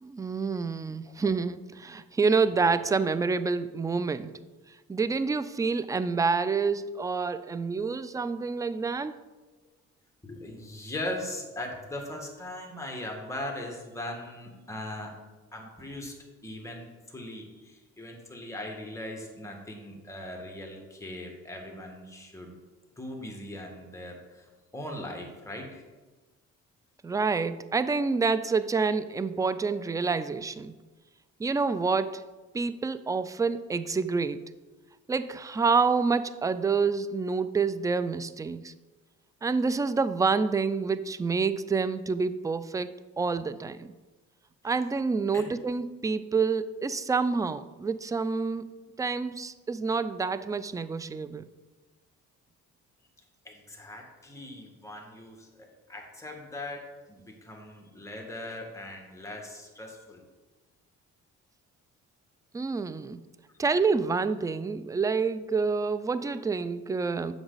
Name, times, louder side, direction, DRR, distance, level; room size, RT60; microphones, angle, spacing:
voice 1, 0.0-4.3 4.9-9.2 27.0-30.7 31.4-32.3 32.5-34.5 35.1-38.7 39.4-43.9 44.6-48.7 49.0-51.5 62.5-63.2 63.6-67.3, right 4 dB, 10° right, 14 dB, 0.3 m, -28 dB
voice 2, 10.2-15.1 15.5-16.2 16.4-22.6 23.0-25.8 45.3-45.5 53.4-60.2, left 1 dB, 10° left, 1 dB, 1.9 m, -40 dB
7.8 x 6.3 x 4.0 m, 1.2 s
cardioid pair, 90°, 30 cm